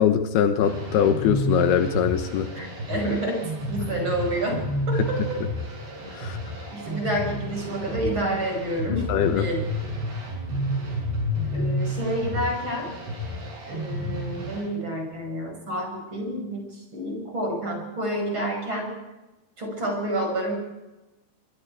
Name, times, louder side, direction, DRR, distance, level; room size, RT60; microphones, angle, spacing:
voice 1, 0.0-2.5 6.1-6.4 9.1-9.4, left 9 dB, 75° left, 8 dB, 2.9 m, -22 dB
sound 1, 0.6-14.6, equal, 85° right, 9.2 m, -30 dB
voice 2, 2.5-5.4 6.7-9.6 11.5-12.9 13.7-18.9 19.6-20.6, right 1 dB, 30° right, 2 dB, 6.4 m, -29 dB
26.5 x 21.0 x 4.8 m, 1.1 s
omnidirectional pair, 4.8 m